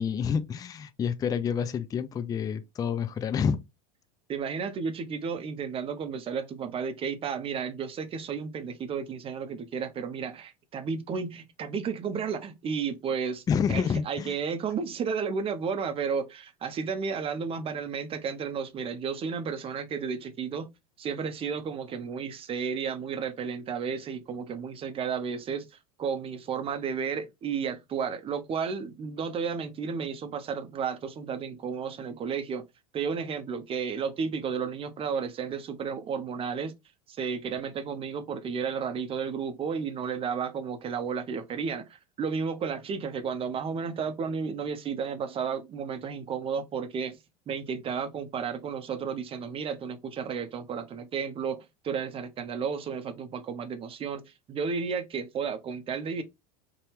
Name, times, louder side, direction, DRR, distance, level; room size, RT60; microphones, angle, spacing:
voice 1, 0.0-3.6 13.5-14.3, left 7 dB, 20° left, 0.4 m, -28 dB
voice 2, 4.3-20.7 21.0-32.6 32.9-36.7 37.1-47.2 47.5-56.2, right 6 dB, 30° right, 0.6 m, -33 dB
2.7 x 2.2 x 3.1 m
hypercardioid pair, 85°, 20 cm